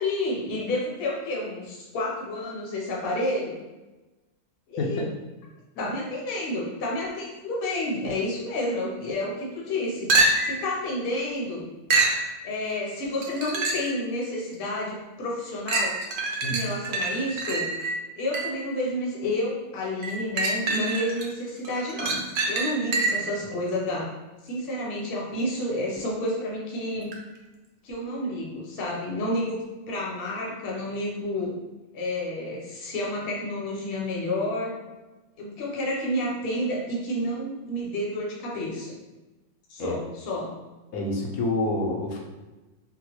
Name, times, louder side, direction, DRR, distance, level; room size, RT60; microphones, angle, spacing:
voice 1, 0.0-3.6 4.7-5.0 5.8-11.6 12.4-16.0 16.4-17.7 18.1-24.1 24.4-27.1 27.8-31.5 31.9-34.8 35.4-38.9 39.7-40.5, left 1 dB, 50° left, -3 dB, 0.9 m, -30 dB
sound 1, 10.1-10.7 11.9-12.2 13.2-14.0 14.5-14.6 15.7-18.7 20.0-21.3 21.6-23.3 27.1-27.2, right 2 dB, 75° right, 0.5 m, -26 dB
voice 2, 16.4-16.7 39.8-40.0 40.9-42.2, left 2 dB, 80° left, -1 dB, 1.1 m, -28 dB
3.8 x 2.1 x 2.9 m, 1.1 s
omnidirectional pair, 1.5 m